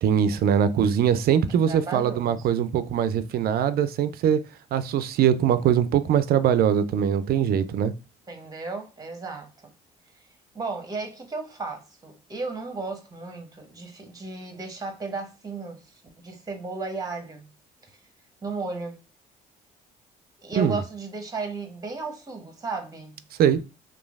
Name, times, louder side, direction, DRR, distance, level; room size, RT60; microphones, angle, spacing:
voice 1, 0.0-4.4 4.7-7.9 20.6-20.8 23.4-23.6, right 9 dB, 50° right, 0.4 m, -22 dB
voice 2, 1.7-2.5 8.3-9.5 10.5-17.5 17.8-18.0 18.4-19.0 20.4-23.2, right 3 dB, 20° right, 0.9 m, -34 dB
3.0 x 2.3 x 2.3 m
hypercardioid pair, 55°, 20 cm